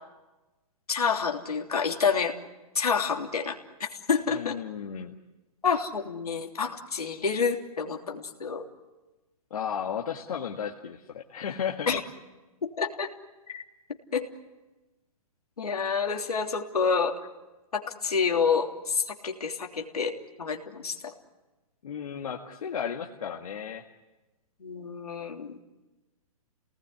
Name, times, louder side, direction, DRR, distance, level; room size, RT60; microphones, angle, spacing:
voice 1, 0.9-2.3 2.7-4.6 5.6-8.6 11.9-12.0 12.6-13.1 13.5-13.6 14.1-14.3 15.6-17.2 17.7-21.1 24.6-25.6, left 5 dB, 85° left, 2 dB, 3.2 m, -28 dB
voice 2, 4.3-5.1 9.5-11.9 21.8-23.8, left 8 dB, 70° left, 1 dB, 2.0 m, -34 dB
29.0 x 19.0 x 10.0 m, 1.1 s
hypercardioid pair, 130°, 19 cm